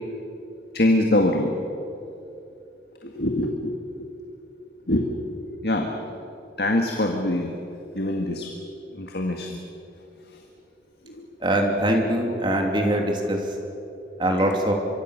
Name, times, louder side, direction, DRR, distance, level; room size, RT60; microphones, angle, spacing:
voice 1, 0.7-1.5 3.0-3.7 4.9-5.4 5.6-5.9 6.6-7.5 7.9-8.5 9.0-9.5 11.1-11.2, left 1 dB, 65° left, 2 dB, 1.9 m, -23 dB
voice 2, 11.4-13.4 14.2-14.7, right 1 dB, 25° right, 2 dB, 3.1 m, -22 dB
25.0 x 24.0 x 6.6 m, 2.8 s
head